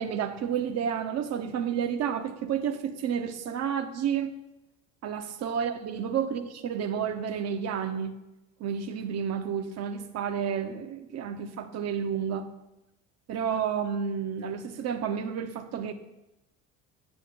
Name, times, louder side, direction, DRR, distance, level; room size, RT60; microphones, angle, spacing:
voice 1, 0.0-4.3 5.0-8.1 8.6-12.5 13.3-15.9, right 7 dB, 40° right, 9 dB, 0.8 m, -30 dB
8.2 x 5.8 x 4.1 m, 0.94 s
figure-of-eight pair, 60°, 39 cm